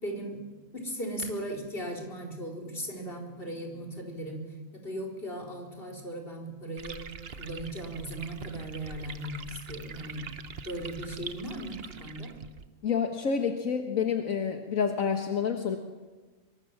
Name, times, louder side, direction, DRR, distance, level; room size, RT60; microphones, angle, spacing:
voice 1, 0.0-0.4 0.7-4.4 4.7-7.0 7.3-10.3 10.6-12.3, right 1 dB, 45° left, 0 dB, 4.7 m, -37 dB
sound 1, 6.8-12.7, right 6 dB, 50° right, 1.1 m, -44 dB
voice 2, 12.8-15.8, left 6 dB, 75° left, 4 dB, 1.9 m, -28 dB
24.5 x 24.5 x 7.4 m, 1.3 s
omnidirectional pair, 1.4 m